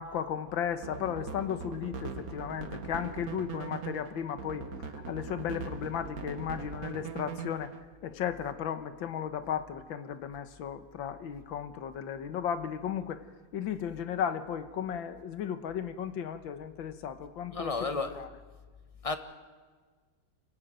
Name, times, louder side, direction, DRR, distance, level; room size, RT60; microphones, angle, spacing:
voice 1, 0.0-7.7 8.0-13.2 13.5-18.3, left 8 dB, 85° left, 1.9 m, -35 dB
sound 1, 0.7-7.8, right 5 dB, 50° right, 1.7 m, -41 dB
voice 2, 17.5-18.2 19.0-19.2, left 3 dB, 20° left, 1.2 m, -32 dB
29.5 x 15.0 x 9.1 m
omnidirectional pair, 2.1 m